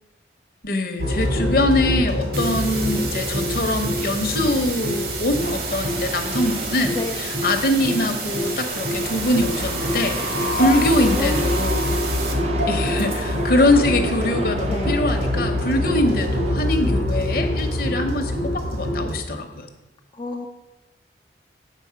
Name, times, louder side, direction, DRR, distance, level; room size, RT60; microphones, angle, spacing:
voice 1, 0.6-11.9 12.6-19.7, left 1 dB, 55° left, 5 dB, 0.9 m, -23 dB
sound 1, 1.0-19.2, left 1 dB, 70° right, 2.4 m, -25 dB
sound 2, 2.3-12.3, right 4 dB, 55° right, 1.2 m, -31 dB
sound 3, 5.4-16.5, right 2 dB, 35° right, 0.5 m, -34 dB
voice 2, 6.9-7.3 11.0-11.6 14.7-15.1 20.1-20.5, left 2 dB, 25° left, 1 dB, 0.4 m, -29 dB
8.4 x 4.4 x 5.7 m, 0.98 s
head